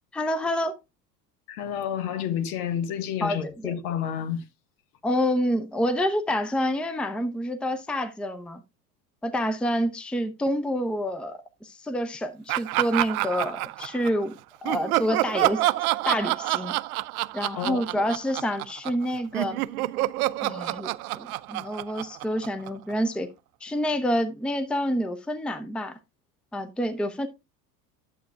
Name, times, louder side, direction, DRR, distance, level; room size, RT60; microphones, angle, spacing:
voice 1, 0.1-0.7 3.2-3.4 3.6-3.7 5.0-8.6 9.2-15.6 16.0-16.7 17.3-19.6 20.4-20.9 21.2-23.3 23.6-26.0 26.5-27.3, equal, ahead, 0.7 m, -28 dB
voice 2, 1.5-4.5 17.6-18.1, left 9 dB, 60° left, 1.5 m, -30 dB
Laughter, 12.5-14.2 14.6-19.0 19.3-22.9, right 18 dB, 60° right, 0.6 m, -28 dB
11.5 x 8.0 x 2.3 m
figure-of-eight pair, 80°, 49 cm